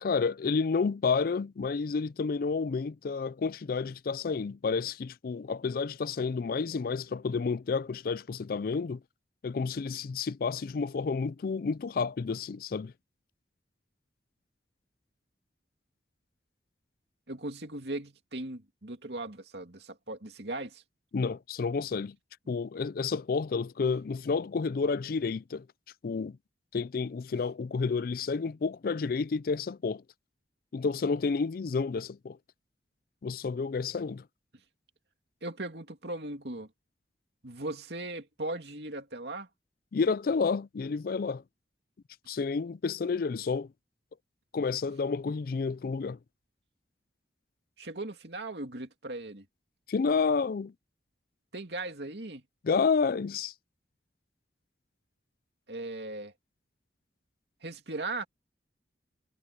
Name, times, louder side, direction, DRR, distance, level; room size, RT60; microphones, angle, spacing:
voice 1, 0.0-9.0 9.4-12.9 21.1-22.2 22.5-25.7 26.0-26.4 26.7-30.0 30.7-32.4 33.2-34.2 39.9-41.4 42.3-43.7 44.5-46.2 49.9-50.7 52.6-53.5, left 5 dB, 55° left, 0.4 m, -30 dB
voice 2, 17.3-20.8 35.4-36.7 37.4-39.5 47.8-49.4 51.5-52.4 55.7-56.3 57.6-58.3, right 2 dB, 70° right, 2.6 m, -38 dB
head